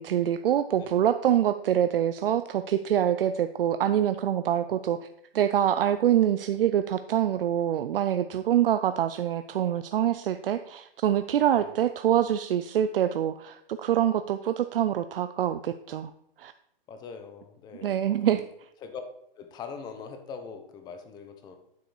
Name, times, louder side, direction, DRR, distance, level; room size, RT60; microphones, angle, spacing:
voice 1, 0.0-5.1 5.3-16.1 16.4-16.5 17.8-18.4, right 10 dB, 70° right, 10 dB, 0.5 m, -25 dB
voice 2, 16.9-18.4 18.8-19.0 19.4-21.6, left 5 dB, 15° left, 8 dB, 0.7 m, -42 dB
9.3 x 5.0 x 4.8 m, 0.76 s
hypercardioid pair, 145°, 29 cm